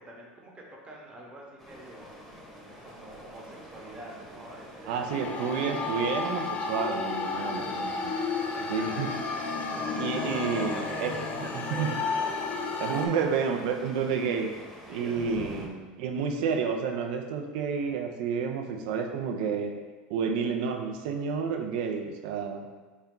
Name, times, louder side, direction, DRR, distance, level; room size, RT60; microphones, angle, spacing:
voice 1, 0.0-2.3 2.8-5.8 7.0-7.9 8.3-12.6 14.9-15.4, right 1 dB, 20° right, -2 dB, 1.0 m, -45 dB
sound 1, 1.6-15.7, equal, ahead, 0.9 m, -46 dB
voice 2, 4.9-7.9 8.7-9.1 9.9-11.1 11.5-12.0 12.8-14.5 14.9-19.8 20.1-22.7, right 6 dB, 70° right, 3 dB, 0.5 m, -30 dB
sound 2, 5.1-13.1, left 4 dB, 30° left, 0.5 m, -32 dB
4.1 x 2.3 x 3.7 m, 1.3 s
hypercardioid pair, 105°, 5 cm